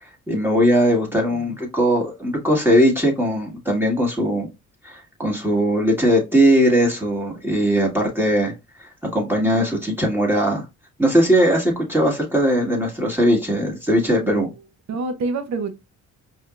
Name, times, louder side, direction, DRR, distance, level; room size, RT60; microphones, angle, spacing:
voice 1, 0.0-4.5 4.8-8.5 8.8-10.6 11.0-14.5, equal, 5° right, 1.6 m, -19 dB
voice 2, 1.1-1.5 14.2-14.3 14.9-15.7, right 3 dB, 60° right, 1.0 m, -27 dB
4.9 x 3.0 x 2.4 m
cardioid pair, 90°, 30 cm